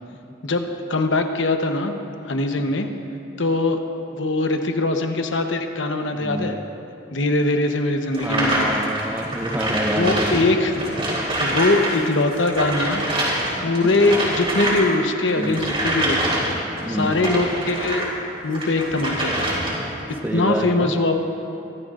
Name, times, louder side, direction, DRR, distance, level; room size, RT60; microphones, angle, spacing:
voice 1, 0.4-2.0 2.2-2.9 3.4-3.8 4.1-6.6 7.1-8.7 9.9-10.7 11.4-13.1 13.6-16.5 16.9-18.1 18.4-19.5 20.3-21.2, left 2 dB, 80° left, 5 dB, 1.0 m, -22 dB
voice 2, 6.1-6.5 8.2-10.4 15.4-15.6 16.8-17.1 20.2-20.9, right 1 dB, 10° right, 2 dB, 0.7 m, -27 dB
sound 1, 8.1-12.0 12.2-18.1 18.5-20.0, right 1 dB, 30° right, 3.3 m, -25 dB
24.5 x 13.0 x 2.5 m, 2.8 s
head